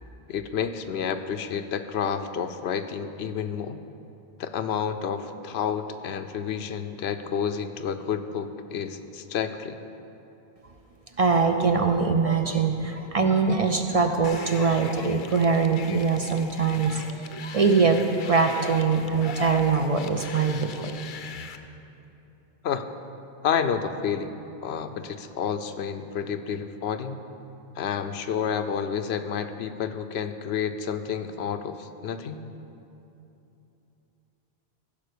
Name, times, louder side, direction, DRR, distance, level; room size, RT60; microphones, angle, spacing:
voice 1, 0.3-3.8 4.4-9.8 22.6-22.9 23.4-24.3 24.6-27.2 27.8-32.4, left 7 dB, 85° left, 9 dB, 0.9 m, -30 dB
voice 2, 11.2-21.0, right 4 dB, 45° right, 5 dB, 0.5 m, -23 dB
sound 1, 14.2-21.6, left 7 dB, 55° left, 0.7 m, -42 dB
15.0 x 5.5 x 6.7 m, 2.9 s
omnidirectional pair, 1.1 m